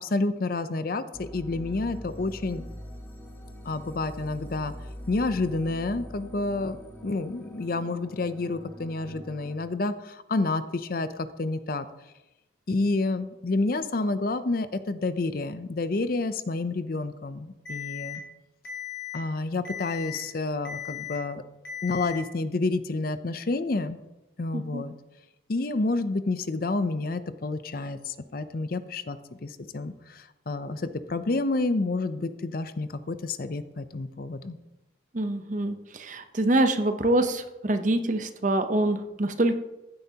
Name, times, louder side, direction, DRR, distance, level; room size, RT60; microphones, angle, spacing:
voice 1, 0.0-2.6 3.6-4.7 5.1-6.8 7.0-11.9 12.7-18.2 19.1-21.4 21.8-24.0 24.4-24.9 25.5-34.6, left 3 dB, 50° left, 12 dB, 0.5 m, -29 dB
sound 1, 1.1-9.6, equal, 10° left, 0.9 m, -43 dB
Alarm, 17.7-18.2 18.7-19.2 19.7-20.2 20.7-21.2 21.7-22.2, left 9 dB, 70° left, 3.4 m, -37 dB
voice 2, 24.5-24.8 35.1-39.5, right 1 dB, 40° right, 8 dB, 0.7 m, -25 dB
15.0 x 9.0 x 2.9 m, 1.0 s
head